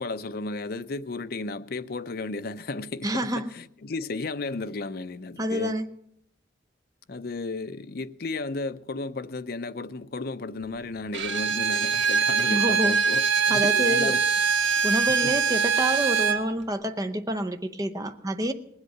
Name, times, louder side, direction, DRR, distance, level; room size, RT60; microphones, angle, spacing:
voice 1, 0.0-5.8 7.1-14.2 15.2-15.4, left 3 dB, 50° left, 0.6 m, -34 dB
voice 2, 3.0-3.5 5.4-5.9 12.5-12.9 13.5-14.2 14.8-18.5, right 1 dB, 20° right, 0.7 m, -28 dB
Bowed string instrument, 11.1-16.4, right 6 dB, 80° right, 1.2 m, -23 dB
19.5 x 8.1 x 7.8 m
head